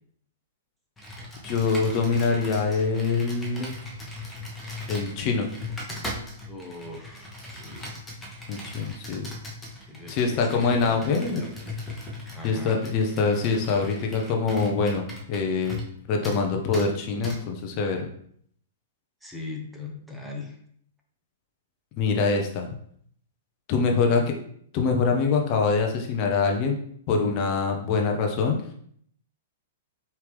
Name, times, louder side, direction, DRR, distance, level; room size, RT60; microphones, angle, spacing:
Computer keyboard, 1.0-16.0 16.2-16.4 16.7-16.9 17.2-17.4, left 2 dB, 15° left, 1.1 m, -38 dB
voice 1, 1.4-3.7 4.9-5.5 8.5-9.3 10.1-11.5 12.4-15.8 16.1-18.1 22.0-22.7 23.7-24.3 24.7-26.8 27.1-28.6, left 4 dB, 40° left, 2 dB, 0.8 m, -24 dB
voice 2, 6.5-8.0 9.9-11.7 12.3-12.8 19.2-20.6, left 2 dB, 5° right, 0 dB, 0.8 m, -40 dB
4.8 x 2.9 x 3.4 m, 0.63 s
hypercardioid pair, 110°, 0 cm